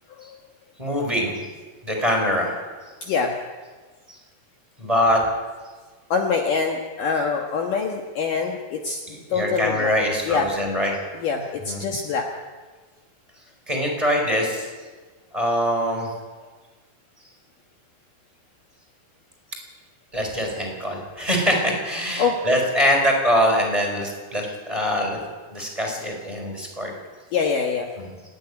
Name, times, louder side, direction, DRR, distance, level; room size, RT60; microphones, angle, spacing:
voice 1, 0.8-1.4 1.8-2.6 4.1-4.2 4.8-5.2 9.1-10.9 11.6-11.8 13.7-14.7 15.3-16.1 20.1-25.2 25.5-26.9, equal, 10° right, 0 dB, 4.6 m, -23 dB
voice 2, 3.0-3.3 6.1-9.0 9.3-9.9 10.3-10.5 11.2-12.3 22.2-22.4 27.3-27.9, left 5 dB, 60° left, 1 dB, 2.7 m, -24 dB
29.5 x 10.0 x 10.0 m, 1.4 s
omnidirectional pair, 4.8 m